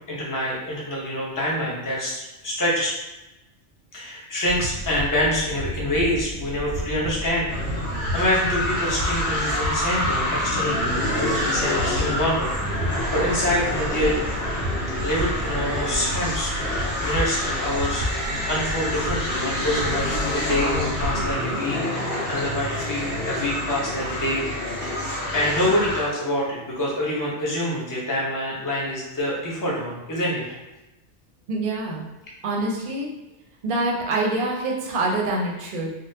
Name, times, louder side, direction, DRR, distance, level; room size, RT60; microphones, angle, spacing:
voice 1, 0.1-2.9 3.9-7.8 8.1-12.8 13.1-14.1 15.0-16.5 17.0-18.0 18.5-24.4 24.8-25.0 25.3-30.5, left 1 dB, 20° left, -5 dB, 0.6 m, -26 dB
sound 1, 4.4-21.3, equal, 90° right, 0.9 m, -32 dB
sound 2, 7.5-26.1, left 1 dB, 55° left, 1.2 m, -27 dB
voice 2, 31.5-32.1 32.4-33.1 33.6-35.9, right 2 dB, 55° right, -2 dB, 0.7 m, -25 dB
3.7 x 2.0 x 2.7 m, 1.0 s
omnidirectional pair, 1.2 m